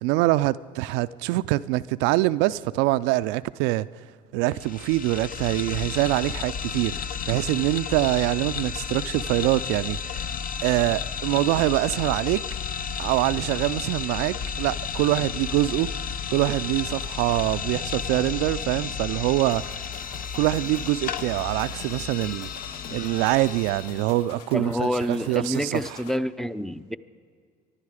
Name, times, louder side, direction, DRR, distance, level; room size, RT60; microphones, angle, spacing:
voice 1, 0.0-3.9 4.3-10.3 10.6-12.4 13.0-19.6 20.3-22.5 22.9-25.7, right 17 dB, 65° right, 0.4 m, -24 dB
sound 1, 4.5-24.2, left 7 dB, 45° left, 0.7 m, -32 dB
sound 2, 19.5-26.2, left 6 dB, 80° left, 0.9 m, -45 dB
voice 2, 24.5-27.0, equal, ahead, 0.5 m, -28 dB
24.5 x 11.5 x 4.9 m
hypercardioid pair, 70°, 20 cm